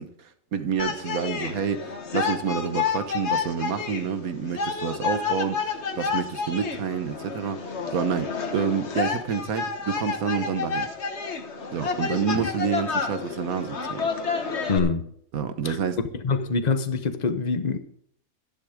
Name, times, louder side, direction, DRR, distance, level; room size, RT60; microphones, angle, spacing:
voice 1, 0.0-10.9 11.7-14.0 15.3-16.0, right 6 dB, 80° right, 1.6 m, -28 dB
sound 1, 0.8-14.8, left 5 dB, 55° left, 1.6 m, -30 dB
voice 2, 14.7-15.1 15.6-15.8 16.2-17.8, left 4 dB, 35° left, 1.0 m, -25 dB
12.5 x 11.0 x 5.1 m
omnidirectional pair, 1.5 m